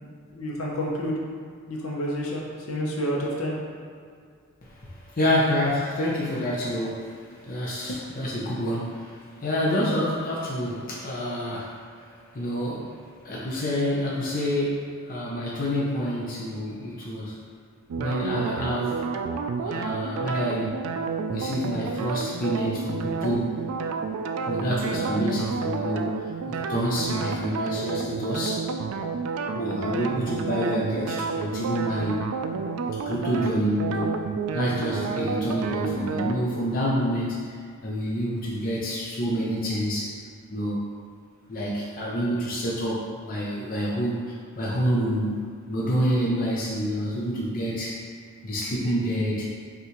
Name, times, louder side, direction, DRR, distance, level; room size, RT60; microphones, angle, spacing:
voice 1, 0.3-1.2 1.7-2.4 2.7-3.5 7.8-8.0, equal, 75° left, -3 dB, 0.8 m, -29 dB
voice 2, 4.8-7.0 7.4-11.8 12.3-12.9 13.2-17.4 18.0-19.0 19.7-20.8 21.3-23.5 24.5-28.7 29.5-32.3 33.0-34.2 34.5-37.5 37.8-40.1 40.5-40.8 41.5-44.2 44.6-48.0 48.4-49.5, equal, 40° left, -5 dB, 0.6 m, -27 dB
sound 1, 17.9-36.3, right 5 dB, 85° right, 0.3 m, -30 dB
5.6 x 2.5 x 3.0 m, 2.1 s
head